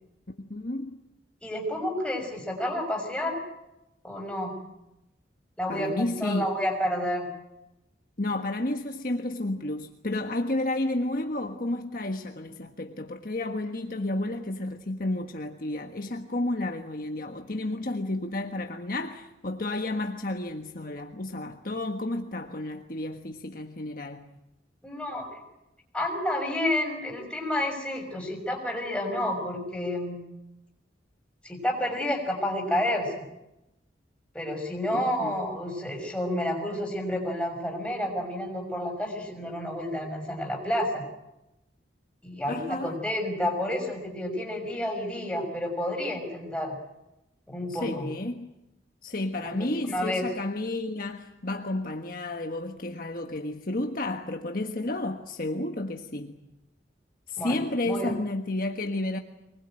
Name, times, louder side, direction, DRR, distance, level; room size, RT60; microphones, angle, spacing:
voice 1, 0.3-1.0 5.7-6.5 8.2-24.3 34.9-35.4 42.5-43.0 47.7-48.5 49.0-56.4 57.3-59.2, left 2 dB, 45° left, 1.5 m, -31 dB
voice 2, 1.4-3.4 4.0-4.6 5.6-7.3 24.8-25.4 25.9-30.2 31.4-33.2 34.3-41.0 42.2-46.7 47.5-48.1 49.4-50.3 57.4-57.6 57.8-58.1, left 1 dB, 5° left, 6.2 m, -30 dB
24.0 x 21.0 x 9.0 m
head